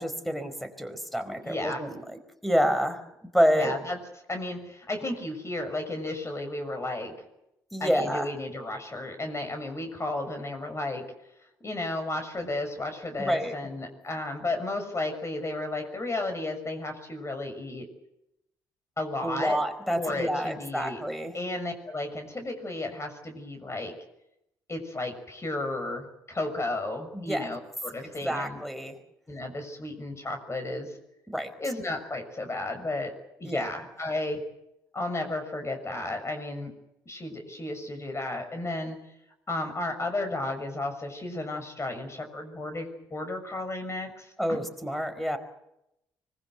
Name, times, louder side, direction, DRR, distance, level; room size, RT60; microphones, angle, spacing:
voice 1, 0.0-3.0 3.3-3.7 7.7-8.3 13.2-13.6 19.2-21.3 27.1-27.5 28.2-29.0 31.3-31.5 33.4-33.7 44.4-45.4, equal, ahead, 10 dB, 4.6 m, -28 dB
voice 2, 1.4-1.8 3.5-4.0 4.3-7.2 7.8-11.1 11.6-17.9 19.0-19.6 19.9-21.0 21.3-24.0 24.7-28.6 29.3-31.0 31.6-33.1 33.4-34.4 34.9-36.7 37.0-39.0 39.5-44.6, left 2 dB, 30° left, 6 dB, 6.4 m, -33 dB
25.0 x 21.0 x 8.0 m, 0.85 s
hypercardioid pair, 45°, 10 cm